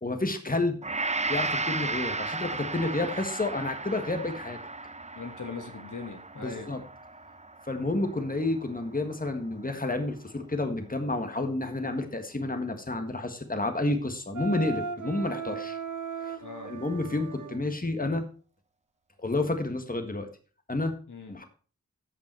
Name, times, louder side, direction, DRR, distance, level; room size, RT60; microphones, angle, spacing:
voice 1, 0.0-0.8 1.3-4.6 6.4-6.8 7.7-15.8 16.2-16.4 16.6-18.2 19.2-20.3 20.7-20.9 21.3-21.4, left 2 dB, 30° left, 6 dB, 1.6 m, -30 dB
Gong, 0.8-9.1 9.6-9.8, right 3 dB, 25° right, 0.6 m, -35 dB
voice 2, 5.1-6.7 16.4-16.7 21.1-21.3, left 4 dB, 85° left, 5 dB, 1.6 m, -40 dB
Wind instrument woodwind instrument, 14.3-17.6, right 5 dB, 90° right, 0.7 m, -36 dB
14.0 x 5.5 x 4.5 m, 0.38 s
wide cardioid pair, 60°, 30 cm